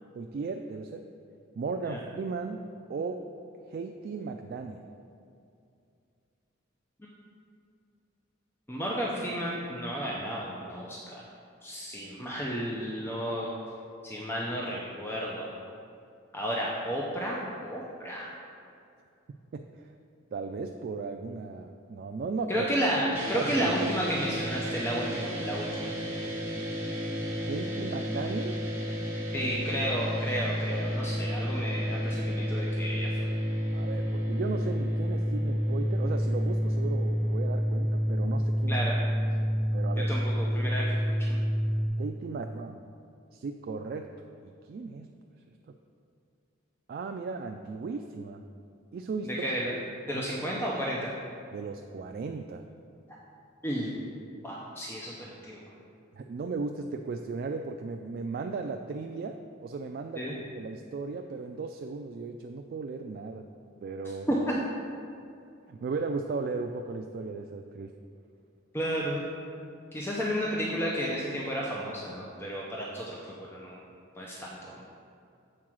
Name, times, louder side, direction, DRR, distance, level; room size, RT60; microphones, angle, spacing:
voice 1, 0.1-1.1 1.6-2.6 2.9-3.3 3.7-4.9 19.5-19.9 20.3-22.9 23.3-23.6 27.5-28.6 33.7-38.9 39.7-40.1 42.0-42.8 43.3-45.1 46.9-48.4 48.9-49.5 50.1-50.3 50.5-50.6 51.5-52.7 56.2-63.5 63.8-64.3 65.7-67.9, right 4 dB, 50° right, 5 dB, 0.3 m, -36 dB
voice 2, 8.7-11.2 11.6-13.5 14.0-15.5 16.3-18.3 22.5-25.9 29.3-33.2 38.7-39.0 40.1-41.4 49.2-49.7 50.1-51.1 53.6-54.0 54.4-55.6 60.2-60.4 64.3-64.5 68.7-69.2 69.9-73.8 74.2-74.8, equal, 10° left, -4 dB, 0.6 m, -32 dB
sound 1, 23.1-41.9, equal, 15° right, 1.5 m, -30 dB
7.4 x 4.6 x 6.2 m, 2.5 s
head